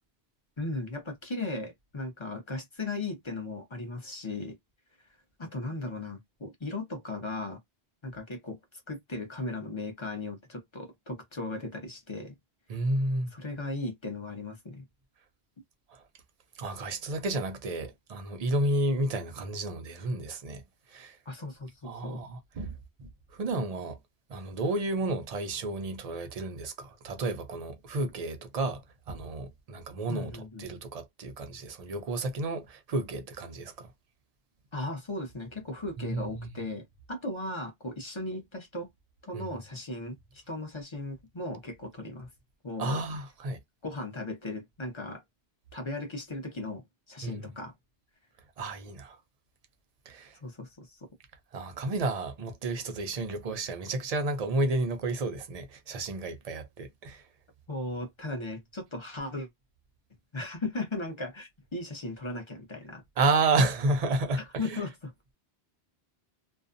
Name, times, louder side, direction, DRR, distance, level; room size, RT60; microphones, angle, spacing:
voice 1, 0.6-4.6 5.1-7.6 8.0-8.6 8.9-12.3 13.3-14.8 21.3-22.2 30.1-30.7 34.7-38.9 39.2-42.3 42.6-43.0 43.8-45.2 45.7-47.7 50.4-51.1 57.7-59.5 60.3-63.0 64.6-65.1, left 2 dB, 30° left, 0.7 m, -37 dB
voice 2, 12.7-13.3 15.9-16.0 16.6-20.6 20.9-21.2 21.8-24.0 24.3-30.3 30.6-33.9 36.0-36.5 39.3-39.5 42.8-43.6 47.2-47.5 48.6-49.2 50.1-50.4 51.5-57.2 63.2-64.8, right 2 dB, 50° right, 0.5 m, -31 dB
2.5 x 2.2 x 2.5 m
omnidirectional pair, 1.1 m